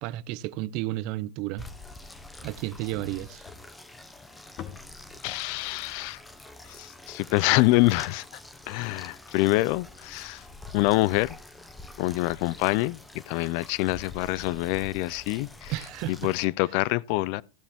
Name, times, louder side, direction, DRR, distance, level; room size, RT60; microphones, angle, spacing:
voice 1, 0.0-1.7 2.4-3.4 15.7-16.1, right 16 dB, 50° right, 0.6 m, -32 dB
sound 1, 1.6-16.4, left 2 dB, 10° left, 1.1 m, -46 dB
sound 2, 3.5-7.8, left 9 dB, 35° left, 1.3 m, -48 dB
voice 2, 5.2-6.2 6.7-8.4 8.7-10.5 10.7-11.4 12.0-15.7 16.1-17.4, left 20 dB, 50° left, 0.4 m, -26 dB
15.0 x 7.3 x 3.5 m
supercardioid pair, 140°, 0 cm